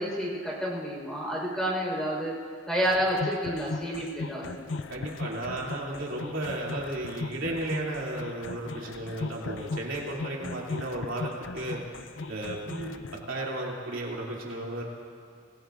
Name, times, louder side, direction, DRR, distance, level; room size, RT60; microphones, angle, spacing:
voice 1, 0.0-2.3 2.7-4.6 10.4-10.6 12.7-12.9, equal, 5° left, -4 dB, 4.4 m, -30 dB
sound 1, 2.8-13.2, left 3 dB, 65° left, 0.5 m, -38 dB
voice 2, 4.9-11.8 12.3-12.6 13.3-14.8, right 1 dB, 75° right, -3 dB, 2.9 m, -34 dB
26.5 x 17.0 x 2.5 m, 2.2 s
head